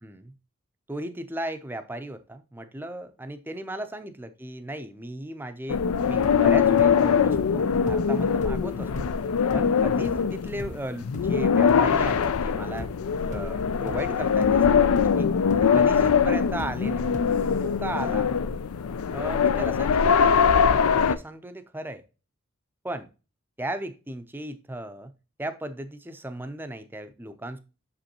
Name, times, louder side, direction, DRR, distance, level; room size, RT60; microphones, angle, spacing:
voice 1, 0.0-0.3 0.9-9.1 9.5-12.9 13.3-15.3 15.7-17.1 17.5-18.3 19.1-20.5 20.9-22.0 22.8-23.1 23.6-25.1 25.4-27.6, right 1 dB, 10° right, 0.5 m, -36 dB
sound 1, 5.7-21.2, left 6 dB, 80° left, 0.4 m, -22 dB
sound 2, 6.2-14.1 14.4-17.6, left 1 dB, 35° left, 0.6 m, -41 dB
6.9 x 5.2 x 2.9 m
head